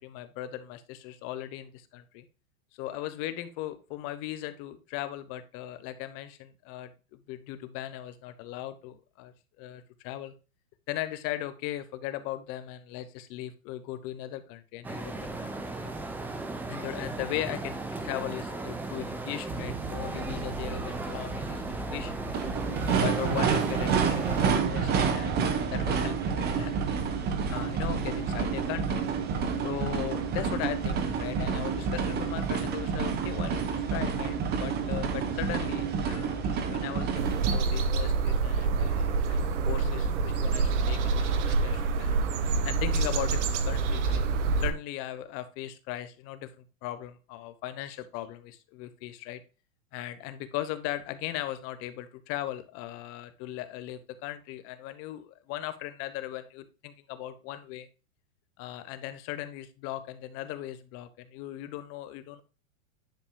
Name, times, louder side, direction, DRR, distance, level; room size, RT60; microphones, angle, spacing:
voice 1, 0.0-2.2 2.7-10.3 10.9-15.9 16.7-22.5 23.0-27.0 27.5-29.0 29.6-42.2 42.6-44.2 44.6-49.4 49.9-57.9 58.6-62.4, left 13 dB, 35° left, 12 dB, 1.0 m, -38 dB
sound 1, 14.8-24.5, right 2 dB, 5° right, 0.5 m, -36 dB
sound 2, 19.5-37.6, right 6 dB, 25° right, 1.1 m, -29 dB
sound 3, 37.2-44.7, right 4 dB, 60° right, 1.3 m, -27 dB
10.5 x 5.4 x 2.3 m, 0.33 s
hypercardioid pair, 135°, 40 cm